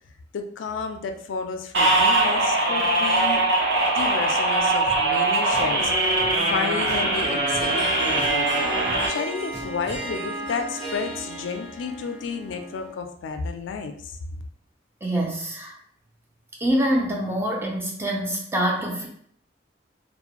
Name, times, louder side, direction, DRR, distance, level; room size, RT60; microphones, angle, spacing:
voice 1, 0.3-3.4 3.9-8.7 9.1-14.2, left 5 dB, 80° left, 6 dB, 0.3 m, -32 dB
sound 1, 1.7-9.1, right 2 dB, 65° right, 0.7 m, -21 dB
Drum, 4.9-5.0 5.5-5.8 6.2-6.3 6.8-7.1 7.5-7.7 8.2-8.4 8.9-9.0 9.5-10.0, equal, 30° right, 1.4 m, -40 dB
Harp, 7.2-13.0, right 1 dB, 90° right, 1.0 m, -34 dB
voice 2, 15.0-15.7 16.6-19.1, right 1 dB, 15° right, -1 dB, 0.5 m, -25 dB
2.4 x 2.1 x 2.9 m, 0.64 s
head